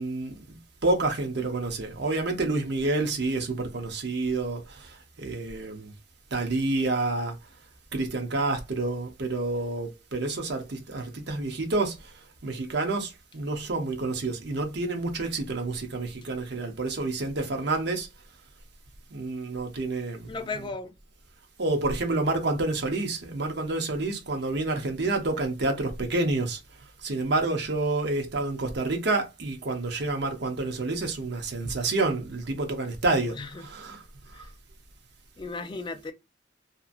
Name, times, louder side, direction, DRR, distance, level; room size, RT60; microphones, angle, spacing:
voice 1, 0.0-5.9 6.3-7.4 7.9-12.1 12.4-18.1 19.1-20.4 21.6-26.6 27.0-34.0 34.3-34.4, right 2 dB, 65° right, 0.8 m, -29 dB
voice 2, 20.3-20.9 33.4-33.6 34.3-34.4 35.4-36.1, left 3 dB, 25° left, 0.3 m, -35 dB
2.8 x 2.6 x 2.4 m
head